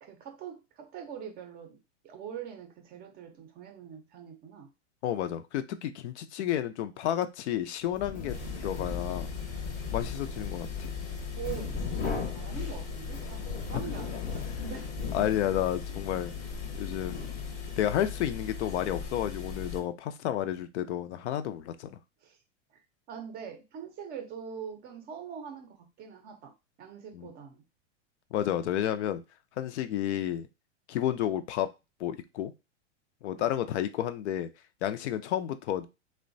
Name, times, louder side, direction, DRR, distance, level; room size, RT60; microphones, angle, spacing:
voice 1, 0.0-1.8 2.0-4.7 9.4-9.7 11.4-14.9 22.2-22.4 22.7-22.8 23.1-27.6 33.3-33.5, right 8 dB, 30° right, 0.5 m, -43 dB
voice 2, 5.0-8.4 8.6-9.3 9.9-10.9 13.7-13.9 15.1-16.3 16.8-17.3 17.8-22.0 27.1-27.3 28.3-29.2 29.6-30.5 30.9-31.7 32.0-32.5 33.2-34.5 34.8-35.9, left 11 dB, 75° left, 0.5 m, -31 dB
sound 1, 7.9-17.8, left 5 dB, 20° left, 0.6 m, -39 dB
sound 2, 8.3-19.8, left 6 dB, 90° left, 1.0 m, -38 dB
2.9 x 2.1 x 2.6 m
hypercardioid pair, 120°, 35 cm